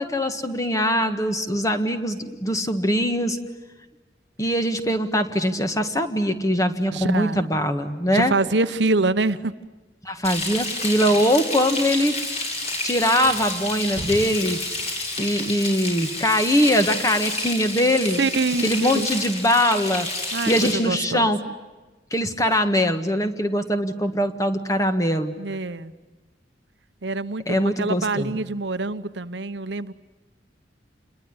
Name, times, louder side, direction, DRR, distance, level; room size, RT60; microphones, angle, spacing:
voice 1, 0.0-3.4 4.4-8.3 10.0-12.2 12.8-14.6 15.2-18.2 18.6-20.1 20.5-21.4 22.1-25.3 27.5-28.3, equal, 20° left, 8 dB, 1.7 m, -22 dB
voice 2, 6.9-7.5 8.1-9.5 18.2-19.1 20.3-21.3 25.4-25.9 27.0-29.9, right 3 dB, 75° right, 11 dB, 1.0 m, -25 dB
Frying (food), 10.2-20.7, left 2 dB, 35° left, 7.4 m, -29 dB
28.5 x 22.0 x 9.5 m, 1.2 s
head